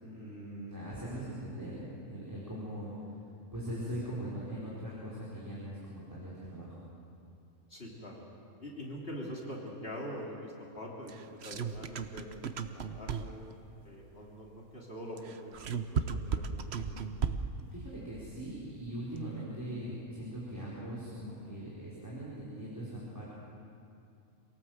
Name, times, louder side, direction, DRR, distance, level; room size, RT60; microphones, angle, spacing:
voice 1, 0.0-2.9 3.5-6.8 17.7-23.3, right 1 dB, 15° right, -8 dB, 4.7 m, -41 dB
voice 2, 7.7-8.2 8.6-13.4 13.8-16.0 16.3-17.1, equal, 45° left, -3 dB, 3.4 m, -44 dB
sound 1, 11.1-13.5 15.2-17.6, right 6 dB, 55° right, 1.1 m, -35 dB
27.0 x 18.0 x 7.9 m, 2.6 s
omnidirectional pair, 1.5 m